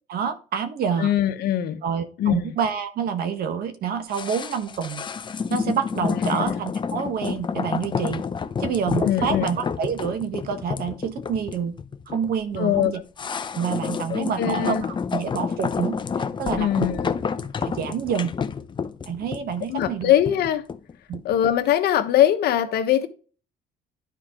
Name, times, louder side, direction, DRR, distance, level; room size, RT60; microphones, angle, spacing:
voice 1, 0.1-1.1 1.8-5.0 5.5-8.2 8.6-11.7 12.1-13.0 13.5-16.0 16.4-16.9 17.6-18.3 19.1-20.1 21.1-21.2, right 7 dB, 65° right, 1.4 m, -27 dB
voice 2, 1.0-1.8 2.2-2.5 6.2-6.5 9.0-9.5 12.6-12.9 14.1-14.9 16.6-17.1 19.7-20.6 21.2-23.1, left 11 dB, 70° left, 1.1 m, -22 dB
sound 1, 4.1-21.3 21.6-21.7, left 6 dB, 30° left, 0.6 m, -29 dB
11.0 x 4.7 x 3.7 m
cardioid pair, 110°, 17 cm